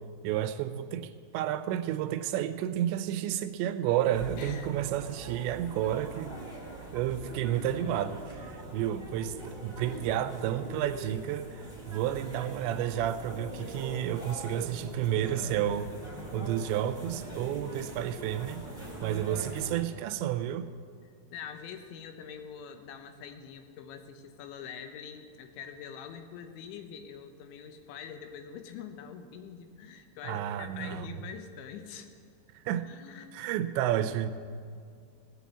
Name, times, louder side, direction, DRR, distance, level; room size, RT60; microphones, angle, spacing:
voice 1, 0.2-6.4 6.9-15.9 16.3-18.6 19.0-20.7 30.2-31.1 32.5-32.9 33.3-34.3, right 11 dB, 85° right, 11 dB, 2.9 m, -31 dB
sound 1, 4.1-19.8, right 2 dB, ahead, 2.0 m, -42 dB
voice 2, 4.4-4.7 6.5-7.0 21.3-32.1 32.9-33.3, left 7 dB, 85° left, 7 dB, 3.2 m, -45 dB
17.5 x 7.1 x 8.3 m, 2.1 s
omnidirectional pair, 5.1 m